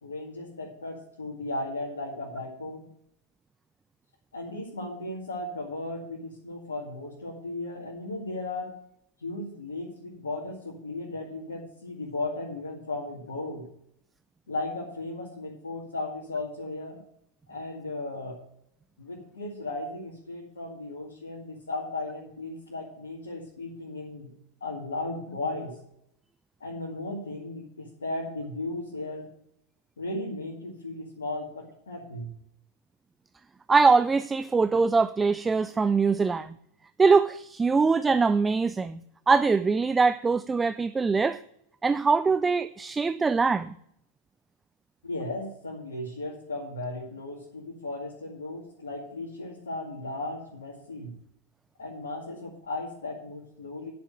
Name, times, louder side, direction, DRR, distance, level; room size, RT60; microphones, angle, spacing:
voice 1, 0.0-2.9 4.3-8.7 9.2-13.6 14.5-17.0 17.5-18.4 19.0-24.3 24.6-25.7 26.6-29.3 30.0-32.3 45.0-51.1 51.8-53.9, left 2 dB, 70° left, 2.1 m, -36 dB
voice 2, 33.7-36.5 37.0-39.0 39.3-41.4 41.8-43.7, right 4 dB, 15° right, 0.3 m, -23 dB
10.0 x 5.9 x 7.7 m
figure-of-eight pair, 90°, 0 cm